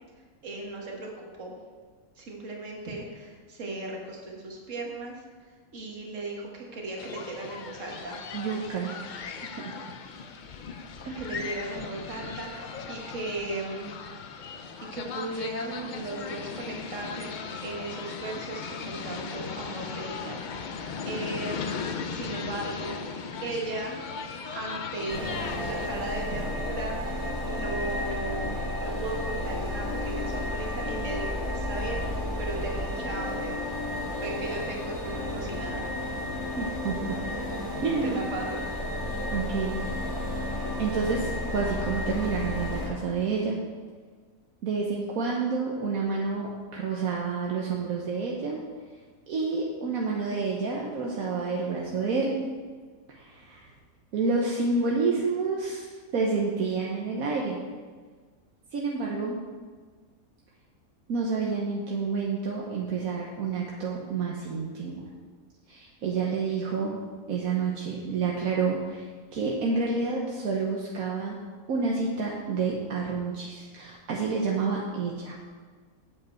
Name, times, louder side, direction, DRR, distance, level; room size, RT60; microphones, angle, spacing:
voice 1, 0.4-1.6 2.2-5.2 5.7-8.2 11.2-13.9 14.9-20.4 20.7-21.7 22.1-24.2 24.5-33.5 34.1-35.8 38.0-38.6, right 2 dB, 60° right, -1 dB, 1.9 m, -37 dB
sound 1, 7.0-25.9, left 5 dB, 70° left, 0.4 m, -37 dB
voice 2, 8.3-9.2 9.6-9.7 11.0-11.3 36.6-37.2 37.8-38.2 39.3-39.8 40.8-43.6 44.6-48.6 49.3-52.4 53.1-53.7 54.1-57.6 58.7-59.4 61.1-65.0 65.7-67.0 67.3-69.1 69.3-71.4 71.7-75.3, right 4 dB, 75° right, -2 dB, 1.4 m, -29 dB
sound 2, 25.1-42.9, left 1 dB, 15° right, 2.1 m, -32 dB
8.5 x 7.7 x 4.4 m, 1.5 s
omnidirectional pair, 1.5 m